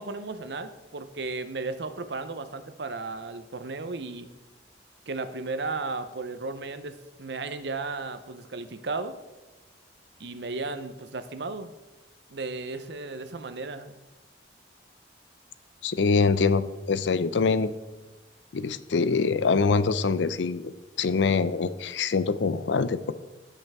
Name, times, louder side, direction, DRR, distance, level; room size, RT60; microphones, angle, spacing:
voice 1, 0.0-4.3 5.1-9.2 10.2-11.7 12.3-14.0, right 3 dB, 65° right, 11 dB, 0.7 m, -35 dB
voice 2, 15.8-17.7 18.5-20.7 21.0-23.1, left 4 dB, 80° left, 14 dB, 0.5 m, -24 dB
16.5 x 5.6 x 3.5 m, 1.1 s
head